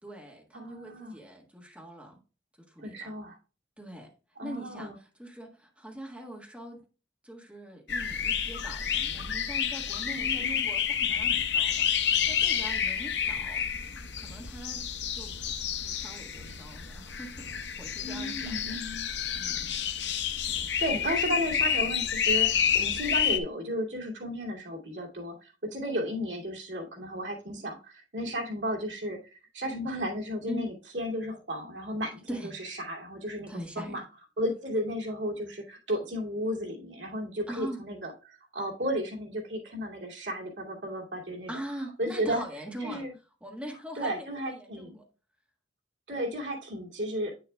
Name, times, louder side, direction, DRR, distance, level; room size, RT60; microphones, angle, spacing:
voice 1, 0.0-2.2 2.6-3.1 3.8-4.1 4.4-6.9 7.2-15.3 15.8-19.8 30.5-30.7 32.3-32.5 33.5-34.0 37.5-37.8 41.5-43.0 43.4-45.1, right 1 dB, 5° right, 0 dB, 1.4 m, -42 dB
voice 2, 0.5-1.2 2.8-3.4 4.4-5.0 10.1-10.6 18.0-19.1 20.8-33.5 33.8-34.0 34.4-41.5 42.0-42.4 42.8-43.1 44.0-45.0 46.1-47.3, equal, 70° right, -1 dB, 2.4 m, -34 dB
sound 1, 7.9-23.4, left 8 dB, 65° left, 0.7 m, -29 dB
8.5 x 6.9 x 2.3 m, 0.33 s
head